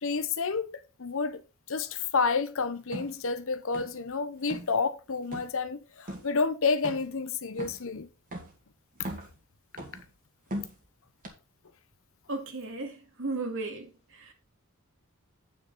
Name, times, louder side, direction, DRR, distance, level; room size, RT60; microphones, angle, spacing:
voice 1, 0.0-1.4 1.7-8.1 9.0-9.1, left 4 dB, 60° left, 0.9 m, -30 dB
sound 1, 2.9-3.1 3.7-4.1 4.4-4.7 5.3-5.6 6.1-6.3 6.8-7.2 7.6-7.9 8.3-8.6 9.0-9.4 9.8-10.1 10.5-10.8 11.2-11.3, equal, 40° right, 2.2 m, -39 dB
voice 2, 12.3-14.3, right 3 dB, 60° right, 2.2 m, -35 dB
9.0 x 6.7 x 4.1 m
head